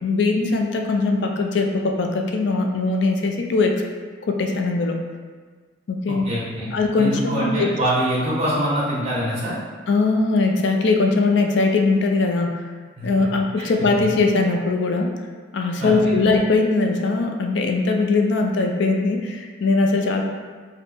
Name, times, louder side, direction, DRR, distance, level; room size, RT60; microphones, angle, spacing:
voice 1, 0.0-3.8 4.2-5.0 5.9-6.3 6.7-7.7 9.9-12.6 13.0-15.1 15.5-20.2, left 3 dB, 60° left, 3 dB, 0.4 m, -20 dB
voice 2, 6.1-6.7 7.0-9.5 13.0-13.1 13.6-13.7 14.0-14.1 15.8-16.2, right 1 dB, 30° right, -7 dB, 1.0 m, -24 dB
4.1 x 2.1 x 3.3 m, 1.5 s
head